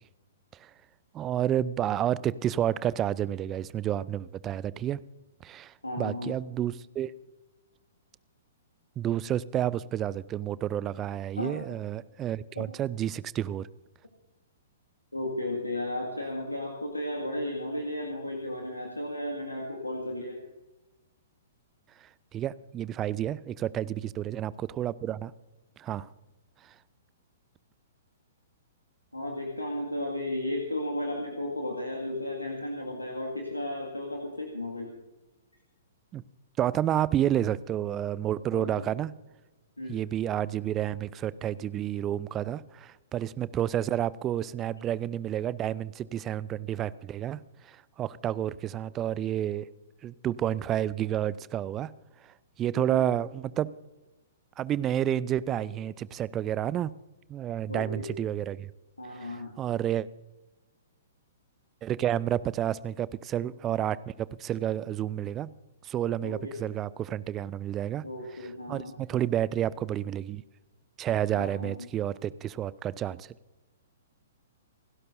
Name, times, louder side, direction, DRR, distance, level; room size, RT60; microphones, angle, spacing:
voice 1, 1.1-5.0 5.4-7.1 9.0-13.7 22.0-25.3 25.8-26.1 36.1-36.2 36.6-39.1 39.9-49.7 50.0-51.9 52.2-53.7 54.6-56.9 57.3-58.7 59.1-60.1 61.8-65.5 65.8-68.0 68.7-70.4 71.0-73.3, right 11 dB, 20° right, 20 dB, 0.5 m, -30 dB
voice 2, 5.8-6.3 11.4-11.6 12.6-12.7 15.1-20.4 29.1-34.9 38.5-38.9 39.8-40.0 52.8-53.0 57.7-58.1 59.0-59.6 66.2-66.5 68.0-68.9 71.3-71.9, left 1 dB, 85° left, 0 dB, 2.1 m, -34 dB
28.0 x 12.0 x 2.7 m, 1.1 s
figure-of-eight pair, 115°, 0 cm